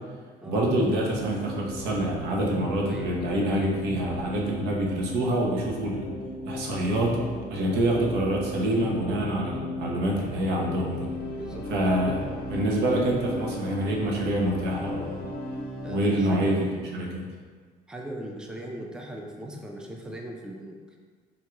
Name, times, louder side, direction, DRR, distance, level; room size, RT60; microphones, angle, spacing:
voice 1, 0.5-6.1 6.5-7.2 7.5-11.1 11.7-12.2 12.5-15.2 15.9-17.2, right 1 dB, 80° right, -1 dB, 0.7 m, -26 dB
sound 1, 1.0-16.0, left 1 dB, 70° left, 0.5 m, -36 dB
voice 2, 2.9-3.2 7.6-7.9 11.4-12.3 15.8-16.6 17.9-21.0, right 1 dB, 5° right, 0 dB, 0.4 m, -39 dB
sound 2, 5.5-11.9, right 4 dB, 30° right, 0.9 m, -47 dB
3.6 x 2.3 x 3.0 m, 1.5 s
cardioid pair, 110°, 17 cm